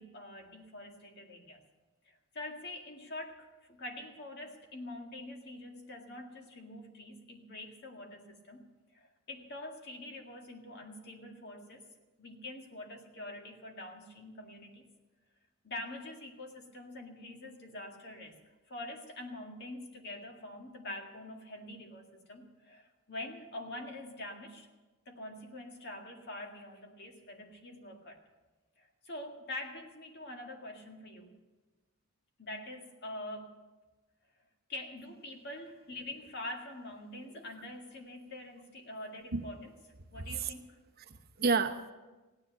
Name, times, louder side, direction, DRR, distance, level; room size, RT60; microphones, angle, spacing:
voice 1, 0.0-1.6 2.1-8.6 8.9-11.8 12.2-14.9 15.6-18.4 18.7-24.7 25.1-28.2 28.8-31.3 32.4-33.5 34.7-39.7 40.1-40.8, left 1 dB, 50° left, 2 dB, 2.0 m, -45 dB
voice 2, 40.1-40.5 41.0-41.9, right 4 dB, 45° right, 6 dB, 0.9 m, -31 dB
16.5 x 10.5 x 6.6 m, 1.2 s
head